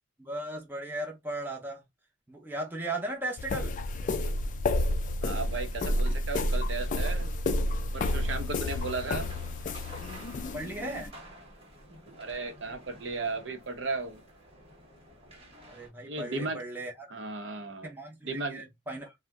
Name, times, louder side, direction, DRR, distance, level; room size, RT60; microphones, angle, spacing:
voice 1, 0.2-1.8 2.3-3.8 10.5-11.1 15.7-17.1 17.8-19.1, right 1 dB, 10° right, 0.6 m, -37 dB
sound 1, 3.4-11.1, left 1 dB, 40° left, 0.3 m, -30 dB
voice 2, 5.2-7.3 7.9-9.3 12.2-14.2 16.0-16.6 17.1-17.9 18.2-18.6, right 3 dB, 65° right, 0.7 m, -35 dB
sound 2, 7.9-15.9, right 1 dB, 30° right, 1.0 m, -50 dB
2.6 x 2.1 x 3.4 m
head